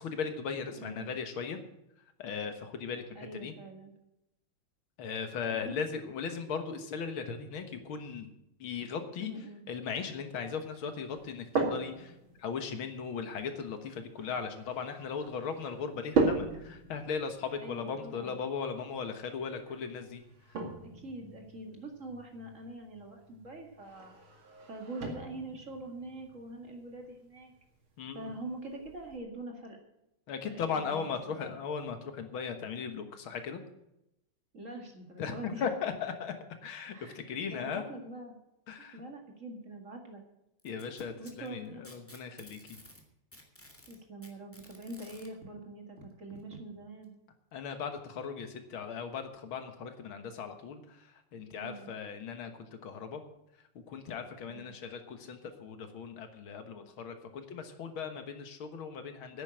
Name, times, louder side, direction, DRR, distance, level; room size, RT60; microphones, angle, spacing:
voice 1, 0.0-1.6 2.0-3.5 5.0-8.3 8.6-9.3 9.7-20.2 20.5-20.6 28.0-28.3 30.3-33.6 35.2-36.3 36.6-37.8 38.7-39.0 40.6-42.8 47.5-53.2 53.5-59.4, left 6 dB, 75° left, 8 dB, 2.1 m, -38 dB
voice 2, 0.7-1.1 3.2-3.9 5.6-5.8 9.2-9.6 17.6-18.3 20.8-24.2 24.7-27.5 28.1-29.8 30.5-31.1 31.4-31.5 34.5-35.6 36.9-37.1 37.5-38.4 38.9-40.2 41.2-41.9 43.9-47.1 51.6-51.9 54.5-54.7, right 2 dB, 35° right, 2 dB, 2.3 m, -44 dB
sound 1, 11.1-29.2, right 3 dB, 70° right, 3.0 m, -39 dB
Packing tape duct tape, 40.6-43.0 43.3-45.3 46.4-46.5 47.0-47.1 48.0-48.1, left 1 dB, 5° left, 2.0 m, -54 dB
10.5 x 9.2 x 8.8 m, 0.86 s
omnidirectional pair, 2.3 m